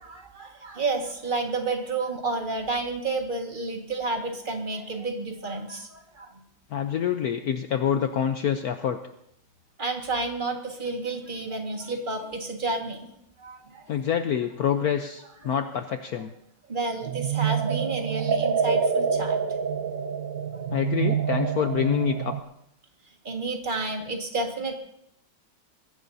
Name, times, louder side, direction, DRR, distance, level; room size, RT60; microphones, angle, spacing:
voice 1, 0.0-6.3 9.8-13.1 13.4-13.9 16.7-19.4 19.8-19.9 23.2-24.7, right 3 dB, 30° right, 3 dB, 1.8 m, -30 dB
voice 2, 6.7-9.0 13.9-16.3 20.7-22.4, left 8 dB, 65° left, 7 dB, 1.1 m, -26 dB
sound 1, 17.0-22.4, right 7 dB, 60° right, 0.9 m, -26 dB
21.5 x 16.0 x 2.7 m, 0.75 s
omnidirectional pair, 2.0 m